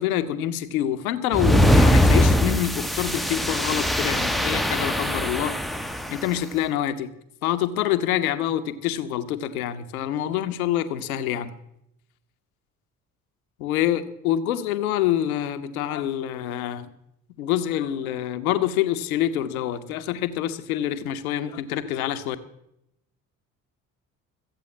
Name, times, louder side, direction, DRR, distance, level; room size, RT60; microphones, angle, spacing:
voice 1, 0.0-5.6 6.1-7.1 7.4-11.5 13.6-16.9 17.4-22.4, left 11 dB, 80° left, 9 dB, 1.0 m, -26 dB
sound 1, 1.3-6.2, equal, ahead, 0.7 m, -21 dB
14.5 x 8.4 x 8.4 m, 0.78 s
hypercardioid pair, 50°, 42 cm